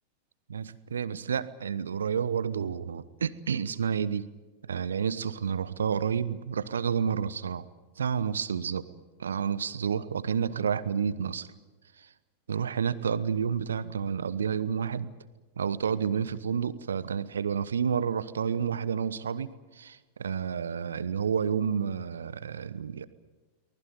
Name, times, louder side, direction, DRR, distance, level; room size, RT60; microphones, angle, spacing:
voice 1, 0.5-4.3 4.6-7.6 8.0-8.8 9.2-11.5 12.0-12.1 12.5-15.1 15.6-23.0, right 7 dB, 70° right, 17 dB, 1.1 m, -30 dB
24.0 x 20.0 x 9.6 m, 1.2 s
figure-of-eight pair, 90°, 0 cm